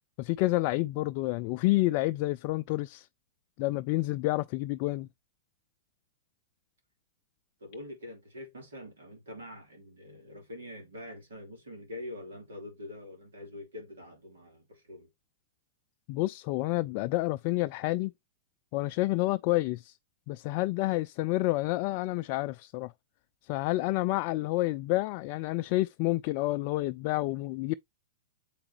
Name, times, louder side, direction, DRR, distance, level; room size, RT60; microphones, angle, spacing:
voice 1, 0.2-3.1 3.6-5.1 16.1-18.1 18.7-19.9 20.3-22.9 23.4-27.7, left 19 dB, 50° left, 0.3 m, -29 dB
voice 2, 7.6-15.1, left 1 dB, 80° right, 3.0 m, -45 dB
7.3 x 4.8 x 2.9 m
hypercardioid pair, 110°, 0 cm